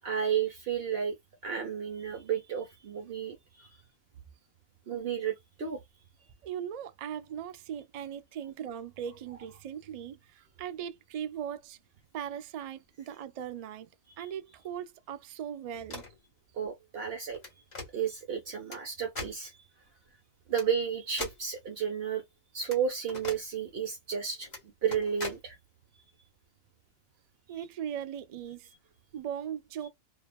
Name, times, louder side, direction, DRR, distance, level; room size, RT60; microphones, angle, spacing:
voice 1, 0.0-1.2 1.4-3.7 4.9-5.8 14.2-14.3 16.5-17.4 17.9-19.6 20.5-22.2 22.5-24.5 24.8-25.6, right 7 dB, 60° right, 0.9 m, -32 dB
voice 2, 6.4-11.8 12.1-13.9 14.2-16.0 27.5-28.7 29.1-29.9, right 9 dB, 80° right, 0.3 m, -39 dB
sound 1, 15.7-16.2 17.3-17.9 18.7-18.8 19.2-19.4 20.5-20.7 21.2-21.4 22.7-22.8 23.1-23.4 24.4-24.6 24.9-25.4, left 2 dB, 35° left, 1.4 m, -40 dB
2.6 x 2.3 x 2.2 m
omnidirectional pair, 1.2 m